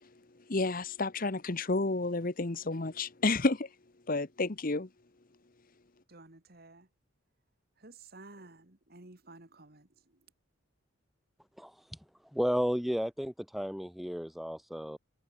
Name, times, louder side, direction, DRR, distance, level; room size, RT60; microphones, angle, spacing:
voice 1, 0.5-3.7 4.1-4.9, left 3 dB, 40° left, 1.0 m, -30 dB
voice 2, 6.1-6.9 7.8-9.9, right 2 dB, 45° right, 2.0 m, -53 dB
voice 3, 11.6-12.0 12.3-15.0, equal, ahead, 0.4 m, -33 dB
head